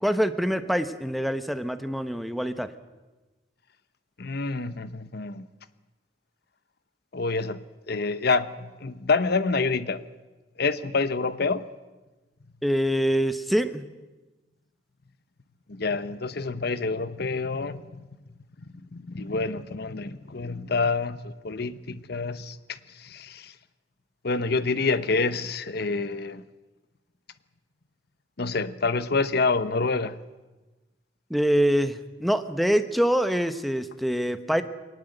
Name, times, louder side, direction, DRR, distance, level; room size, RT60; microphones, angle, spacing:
voice 1, 0.0-2.7 12.6-13.8 31.3-34.6, equal, ahead, 1.1 m, -25 dB
voice 2, 4.2-5.5 7.1-10.0 10.6-11.7 15.7-18.0 18.9-23.5 24.2-26.4 28.4-30.2, left 4 dB, 60° left, 1.0 m, -27 dB
22.5 x 19.0 x 7.9 m
head